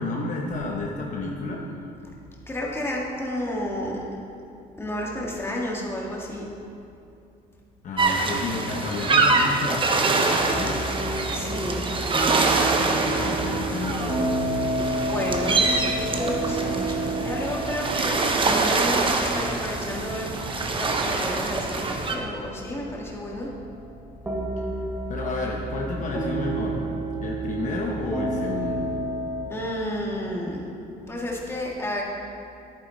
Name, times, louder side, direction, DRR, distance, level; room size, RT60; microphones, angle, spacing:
voice 1, 0.0-1.6 7.8-10.8 12.7-14.3 25.1-26.8 27.2-28.9, left 3 dB, 50° left, -1 dB, 1.1 m, -31 dB
voice 2, 2.5-4.0 4.8-6.5 11.3-11.8 15.0-23.5 29.5-30.7 31.1-32.0, left 1 dB, 15° left, -3 dB, 1.9 m, -31 dB
sound 1, 8.0-22.2, right 3 dB, 30° right, 0.9 m, -25 dB
sound 2, 10.4-29.4, right 1 dB, 10° right, 1.5 m, -31 dB
10.5 x 9.3 x 4.0 m, 2.6 s
cardioid pair, 110°, 17 cm